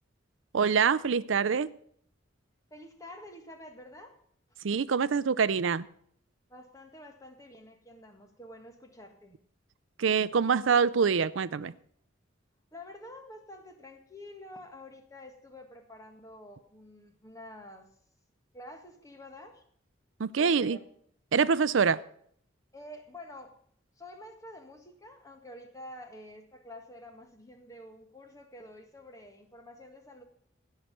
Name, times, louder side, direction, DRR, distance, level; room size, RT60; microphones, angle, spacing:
voice 1, 0.5-1.7 4.6-5.8 10.0-11.7 20.2-20.8 21.3-22.0, right 6 dB, 85° right, 17 dB, 0.5 m, -25 dB
voice 2, 2.7-4.1 6.5-9.4 12.7-17.9 18.5-19.6 20.4-20.8 22.7-23.5 24.0-30.2, left 1 dB, 15° left, 5 dB, 1.7 m, -48 dB
16.5 x 5.7 x 7.9 m, 0.63 s
head